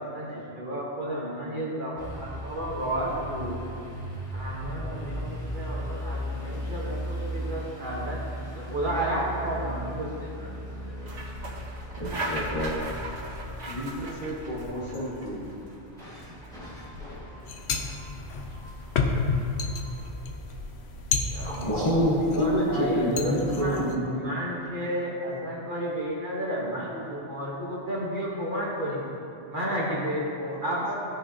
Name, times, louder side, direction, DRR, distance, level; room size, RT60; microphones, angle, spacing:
voice 1, 0.0-1.9 2.5-3.6 4.3-8.2 8.5-11.1 21.3-21.7 22.3-29.0 29.5-30.9, right 1 dB, 45° right, -5 dB, 1.4 m, -32 dB
sound 1, 2.0-20.1, equal, 5° left, 1.8 m, -38 dB
sound 2, 10.7-23.0, equal, 80° right, 2.1 m, -40 dB
voice 2, 12.0-12.7 21.4-24.0, equal, 25° left, -8 dB, 1.3 m, -26 dB
voice 3, 13.7-16.2 30.0-30.2 30.7-30.8, equal, 40° left, -9 dB, 2.3 m, -36 dB
sound 3, 17.5-22.5 22.9-23.9, left 4 dB, 70° left, 0.9 m, -30 dB
14.0 x 5.5 x 2.8 m, 2.7 s
omnidirectional pair, 1.2 m